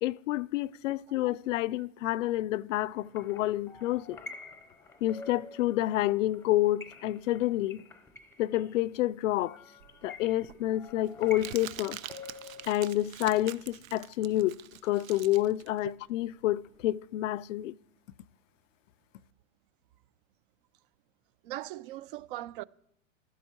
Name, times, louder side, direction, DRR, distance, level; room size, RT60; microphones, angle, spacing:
voice 1, 0.0-4.2 5.0-7.8 8.4-9.6 10.0-12.0 12.7-14.6 14.8-17.7, left 15 dB, 70° left, 0.5 m, -29 dB
sound 1, 2.9-12.7, left 3 dB, 5° left, 0.6 m, -49 dB
Crumpling crinkling, 9.8-16.9, right 11 dB, 85° right, 0.7 m, -46 dB
voice 2, 21.4-22.6, right 15 dB, 45° right, 0.4 m, -39 dB
15.0 x 12.0 x 4.4 m
supercardioid pair, 140°, 39 cm